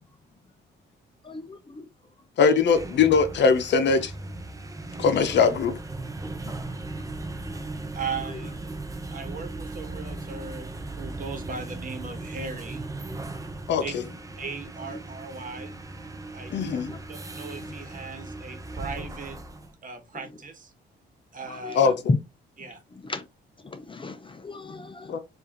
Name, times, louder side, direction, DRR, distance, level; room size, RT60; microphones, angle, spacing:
voice 1, 1.2-1.9 16.5-17.0 17.6-17.7 21.6-21.7 22.1-22.2 23.0-23.2 23.6-25.2, left 3 dB, 25° left, 0.5 m, -32 dB
voice 2, 2.4-4.1 5.0-5.7 13.7-14.0 16.5-16.9 21.7-21.9 25.1-25.2, left 5 dB, 60° left, 0.8 m, -21 dB
sound 1, 2.6-19.7, right 2 dB, 15° right, 0.7 m, -37 dB
voice 3, 7.9-8.5 9.1-10.7 11.0-12.8 13.8-13.9 14.4-15.7 16.3-16.6 17.1-19.4 19.8-20.7 21.3-21.9 22.6-22.8, right 4 dB, 45° right, 1.2 m, -37 dB
4.7 x 2.6 x 2.9 m
cardioid pair, 90°, 20 cm